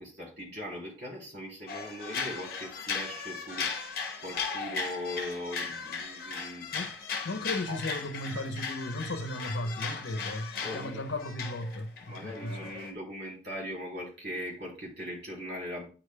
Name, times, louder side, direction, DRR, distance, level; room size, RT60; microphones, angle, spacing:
voice 1, 0.0-6.7 7.3-7.4 7.7-7.8 10.6-11.0 12.1-15.9, left 1 dB, 65° right, 3.1 m, -40 dB
sound 1, 1.7-12.9, left 5 dB, 50° left, 0.9 m, -37 dB
voice 2, 7.2-12.8, left 1 dB, 90° left, 0.7 m, -36 dB
9.0 x 4.9 x 2.2 m
head